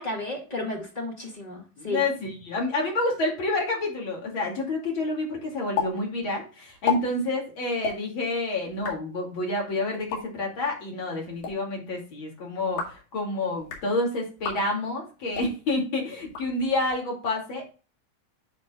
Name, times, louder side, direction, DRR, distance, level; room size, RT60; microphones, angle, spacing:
voice 1, 0.0-2.0, left 1 dB, 20° left, 0 dB, 1.2 m, -33 dB
voice 2, 1.8-17.7, left 2 dB, 35° left, -1 dB, 3.0 m, -29 dB
sound 1, 5.8-5.9 6.2-6.3 6.7-7.0 7.8-8.0 8.7-9.0 9.9-10.2 11.2-11.5 12.6-13.0 13.5-13.9 14.4-14.6 15.3-15.5 16.2-16.9, left 7 dB, 75° left, 3.6 m, -31 dB
10.5 x 5.4 x 2.4 m, 0.34 s
omnidirectional pair, 4.0 m